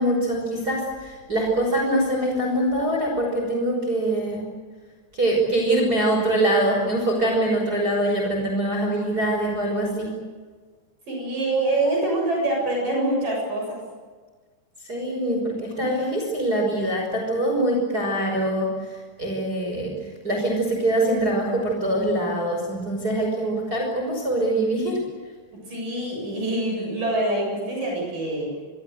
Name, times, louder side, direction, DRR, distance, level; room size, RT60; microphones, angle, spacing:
voice 1, 0.0-4.4 5.1-10.1 14.9-19.9 20.2-25.0, right 1 dB, 20° right, 0 dB, 5.7 m, -23 dB
voice 2, 11.1-13.8 15.8-16.1 25.5-28.5, right 2 dB, 45° right, -1 dB, 8.7 m, -25 dB
25.5 x 23.0 x 8.0 m, 1.4 s
omnidirectional pair, 5.5 m